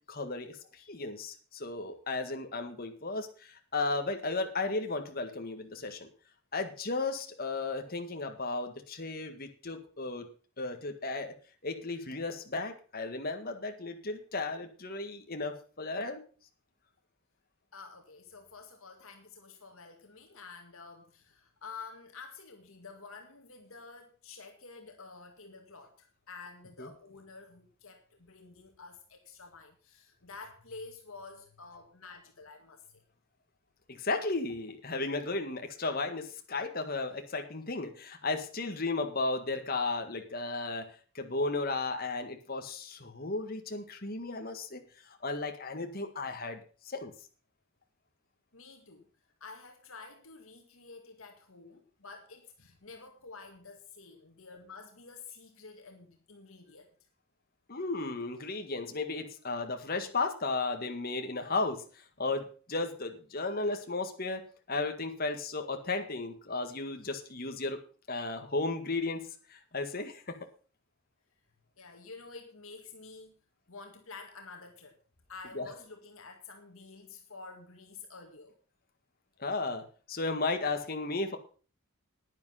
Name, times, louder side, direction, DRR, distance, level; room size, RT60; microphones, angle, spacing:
voice 1, 0.1-0.6 0.9-6.1 6.5-10.3 10.6-11.3 11.6-16.2 26.8-26.9 33.9-44.8 45.1-46.6 46.9-47.1 57.7-67.8 68.1-70.4 75.5-75.7 79.4-81.4, left 3 dB, 40° left, 5 dB, 1.8 m, -34 dB
voice 2, 17.7-33.0 48.5-49.1 49.4-56.9 71.8-73.4 73.7-75.0 75.3-78.5, left 4 dB, 65° left, 3 dB, 1.9 m, -49 dB
10.5 x 10.0 x 5.7 m, 0.39 s
head